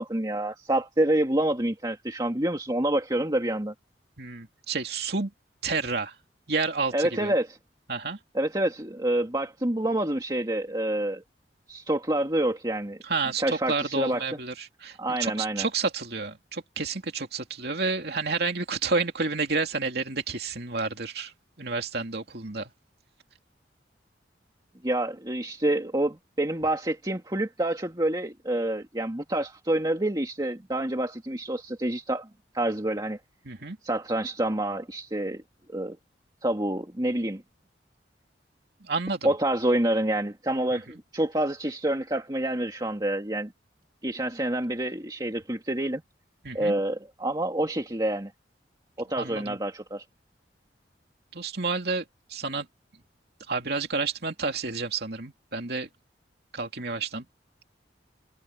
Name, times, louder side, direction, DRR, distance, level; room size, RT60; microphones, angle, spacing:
voice 1, 0.0-3.7 6.9-7.6 8.3-11.2 11.7-13.0 13.4-14.2 15.0-15.7 24.8-32.3 32.5-33.2 33.8-35.4 35.7-36.0 36.4-37.4 39.2-43.5 44.0-46.0 46.5-48.3 49.0-50.0, right 1 dB, 20° right, 2.3 m, -27 dB
voice 2, 4.2-5.3 5.6-6.1 6.5-7.3 7.9-8.2 13.0-21.3 21.6-22.7 33.4-33.8 38.8-39.3 40.7-40.8 46.4-46.7 49.1-49.6 51.3-52.0 52.3-52.7 53.5-55.9 56.5-57.3, right 4 dB, 60° right, 2.9 m, -30 dB
head